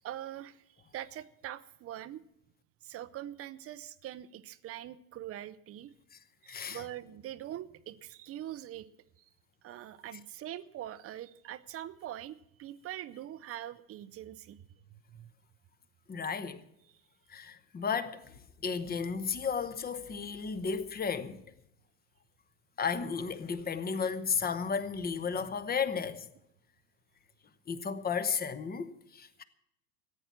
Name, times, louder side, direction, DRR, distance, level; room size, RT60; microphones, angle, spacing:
voice 1, 0.0-0.6 0.9-2.2 2.8-5.9 6.4-8.9 9.2-9.3 9.6-14.6 14.9-15.3, right 12 dB, 30° right, 0.7 m, -43 dB
voice 2, 6.5-6.9 16.1-16.6 17.3-21.4 22.8-26.3 27.7-29.4, left 6 dB, 20° left, 1.0 m, -34 dB
14.5 x 9.1 x 7.3 m
hypercardioid pair, 95°, 48 cm